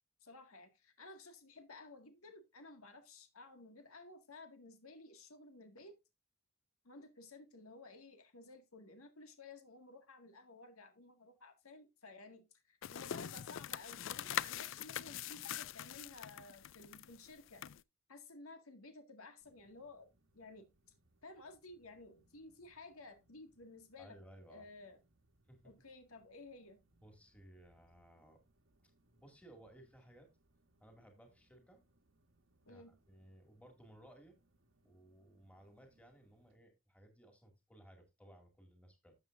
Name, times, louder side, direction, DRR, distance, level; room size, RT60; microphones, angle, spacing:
voice 1, 0.2-6.0 6.8-17.6 18.1-20.7 21.2-24.2 24.5-25.0 25.6-26.8 32.6-32.9, left 2 dB, 85° left, 1.9 m, -55 dB
sound 1, 12.8-17.8, left 10 dB, 65° left, 0.4 m, -43 dB
sound 2, 19.4-36.6, right 1 dB, 65° right, 1.2 m, -75 dB
voice 2, 24.0-24.7 25.5-25.7 27.0-28.4 28.8-30.3 30.8-31.8 32.7-34.4 34.8-39.2, right 1 dB, 5° left, 2.2 m, -60 dB
12.5 x 7.5 x 2.5 m
head